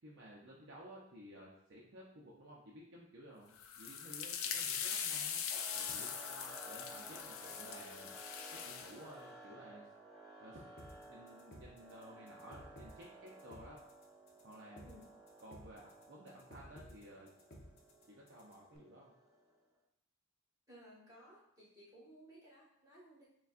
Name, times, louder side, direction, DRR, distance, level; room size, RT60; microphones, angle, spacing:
voice 1, 0.0-5.4 5.7-8.1 8.5-9.9 10.4-10.6 11.0-13.8 14.4-14.9 15.4-17.3 18.1-19.1, right 1 dB, 55° right, -4 dB, 0.6 m, -55 dB
sound 1, 3.6-9.0, left 7 dB, 65° left, 0.4 m, -41 dB
sound 2, 5.5-19.6, right 1 dB, ahead, 0.7 m, -56 dB
sound 3, 10.8-18.8, equal, 45° left, 0.8 m, -56 dB
voice 2, 20.7-23.3, equal, 15° right, -7 dB, 1.5 m, -59 dB
6.7 x 2.3 x 2.4 m, 0.73 s
head